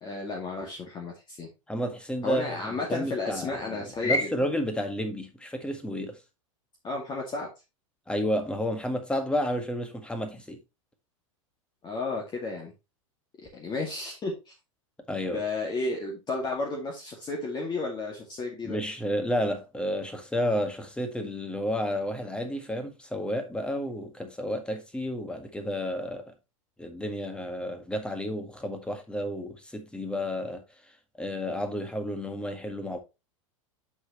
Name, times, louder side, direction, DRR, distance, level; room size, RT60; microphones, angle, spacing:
voice 1, 0.0-1.5 2.2-4.3 6.8-7.5 11.8-12.7 13.5-14.5 15.3-18.8, left 3 dB, 25° left, 2.2 m, -32 dB
voice 2, 1.7-2.6 2.9-6.2 8.1-10.6 15.1-15.4 18.6-26.3 26.8-30.6 31.2-33.0, equal, 5° left, 1.7 m, -31 dB
7.7 x 6.2 x 3.0 m
figure-of-eight pair, 95°, 17 cm